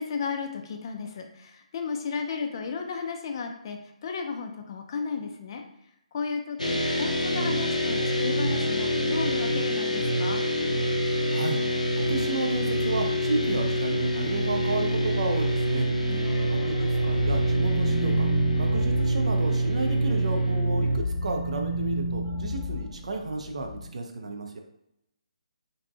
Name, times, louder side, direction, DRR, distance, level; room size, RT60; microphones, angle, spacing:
voice 1, 0.0-5.6 6.1-10.4 16.1-16.5, left 5 dB, 35° left, 4 dB, 0.3 m, -34 dB
sound 1, 6.6-21.0, equal, 90° left, 0.5 m, -25 dB
voice 2, 12.0-15.9 16.5-18.3 18.6-24.6, right 2 dB, 60° right, 4 dB, 0.4 m, -32 dB
sound 2, 16.2-20.1 20.5-23.9, equal, 15° left, 0.9 m, -33 dB
2.6 x 2.2 x 2.5 m, 0.81 s
figure-of-eight pair, 140°, 4 cm